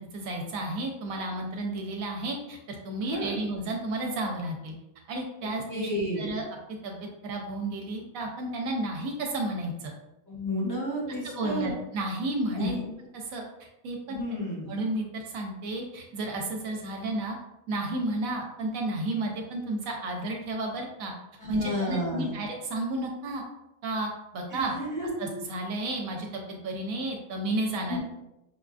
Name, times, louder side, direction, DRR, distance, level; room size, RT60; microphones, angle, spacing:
voice 1, 0.0-4.8 5.1-5.9 6.2-6.5 6.8-7.0 7.2-9.9 11.3-12.7 13.3-13.4 13.8-14.2 14.7-17.4 17.7-21.1 21.5-23.4 23.8-24.7 25.2-28.0, right 2 dB, 70° right, 1 dB, 1.1 m, -32 dB
voice 2, 3.0-3.4 5.7-6.3 10.3-11.7 12.5-12.8 14.1-14.7 21.4-22.3 24.5-25.2 27.8-28.0, equal, 20° left, -4 dB, 0.6 m, -31 dB
5.5 x 2.4 x 2.4 m, 0.93 s
omnidirectional pair, 1.5 m